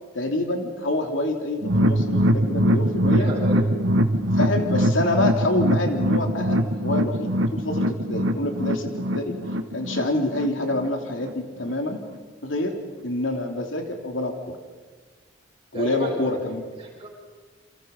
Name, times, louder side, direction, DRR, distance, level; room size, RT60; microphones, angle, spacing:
voice 1, 0.1-3.3 4.3-9.3 9.7-12.0 12.4-12.8 13.0-14.3 15.7-16.6, left 1 dB, 70° left, 4 dB, 3.0 m, -27 dB
sound 1, 1.6-10.9 11.2-11.3 11.7-11.8, equal, 75° right, 1.5 m, -22 dB
voice 2, 3.0-3.7 9.1-9.2 15.7-16.2 16.8-17.1, right 1 dB, 30° right, -2 dB, 7.4 m, -32 dB
28.5 x 28.0 x 5.3 m, 1.4 s
head